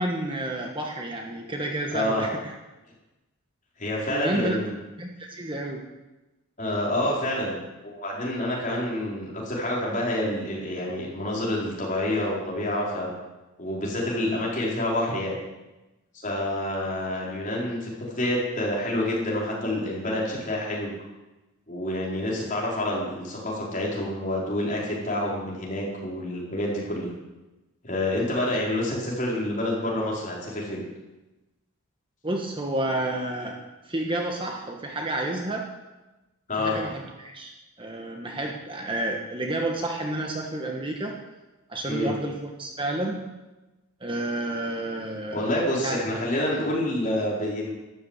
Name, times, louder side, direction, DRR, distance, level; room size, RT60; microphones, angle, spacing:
voice 1, 0.0-2.5 4.1-4.6 5.0-5.9 32.2-33.6 33.8-35.7 36.6-37.5 37.8-41.2 41.7-43.3 44.0-45.6 45.8-46.0, right 1 dB, 20° right, 1 dB, 1.3 m, -30 dB
voice 2, 1.9-2.2 3.8-4.7 6.6-13.1 13.6-15.3 16.2-20.9 21.7-27.1 27.8-30.8 36.5-36.8 41.9-42.1 45.3-47.7, left 1 dB, 35° left, -4 dB, 4.6 m, -28 dB
12.5 x 10.5 x 8.2 m, 1.1 s
head